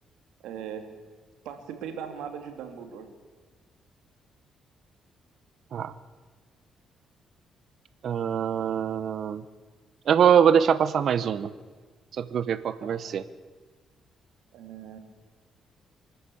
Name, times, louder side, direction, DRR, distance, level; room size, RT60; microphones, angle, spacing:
voice 1, 0.4-0.8 1.4-3.1 12.8-13.0 14.5-15.0, right 8 dB, 90° right, 6 dB, 2.7 m, -39 dB
voice 2, 8.0-9.4 10.1-11.5 12.2-13.2, right 8 dB, 60° right, 14 dB, 0.9 m, -23 dB
24.5 x 13.0 x 8.5 m, 1.3 s
cardioid pair, 90°, 0 cm